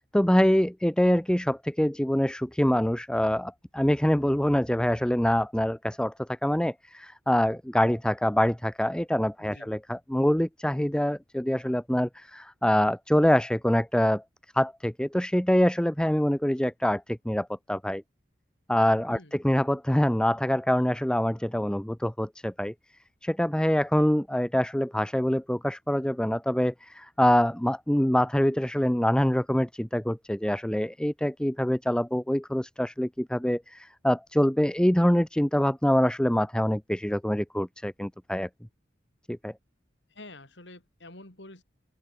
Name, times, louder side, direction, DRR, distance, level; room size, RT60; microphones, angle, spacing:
voice 1, 0.0-14.2 14.5-18.0 18.7-22.7 23.2-38.5 39.3-39.5, equal, 5° left, 0.7 m, -25 dB
voice 2, 9.4-9.7 19.1-19.3 40.1-41.6, left 2 dB, 70° left, 4.8 m, -48 dB
open air
head